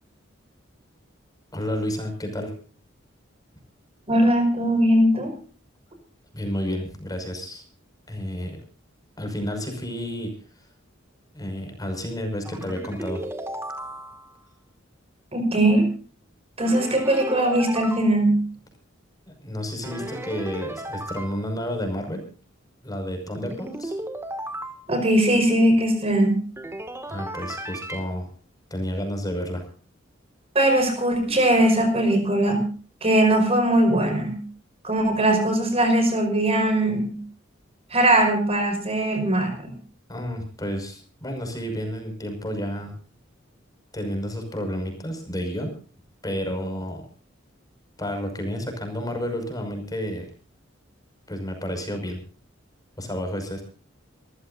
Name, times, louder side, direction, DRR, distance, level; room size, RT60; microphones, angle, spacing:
voice 1, 1.5-2.5 6.3-7.6 8.1-8.6 9.2-10.3 11.3-13.2 19.3-22.2 22.8-24.0 27.1-28.3 28.7-29.6 40.1-42.9 43.9-45.7 46.2-47.1 48.0-50.3 51.3-52.2 53.0-53.6, equal, 20° left, 4 dB, 5.8 m, -31 dB
voice 2, 4.1-5.3 15.3-15.9 16.6-18.5 24.9-26.4 30.5-32.7 33.0-34.4 34.8-37.2 37.9-39.7, right 1 dB, 30° right, 6 dB, 5.5 m, -20 dB
sound 1, 12.4-14.4 16.6-18.1 19.8-21.4 23.3-24.8 26.6-28.0, right 1 dB, 15° right, 2.0 m, -35 dB
27.5 x 15.0 x 2.7 m, 0.40 s
head